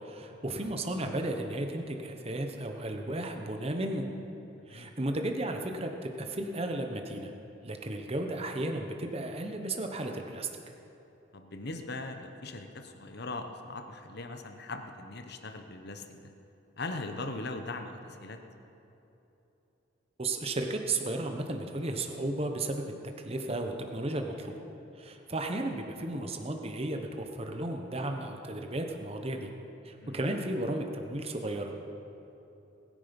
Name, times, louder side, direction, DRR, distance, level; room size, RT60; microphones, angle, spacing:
voice 1, 0.0-4.1 4.7-7.3 7.6-10.5 20.2-22.9 23.2-24.5 25.0-29.5 29.8-31.8, right 1 dB, 30° right, 4 dB, 1.1 m, -34 dB
voice 2, 4.6-4.9 11.3-16.3 16.8-18.4 30.0-30.2, left 2 dB, 55° left, 6 dB, 1.0 m, -40 dB
20.5 x 10.0 x 5.3 m, 3.0 s
head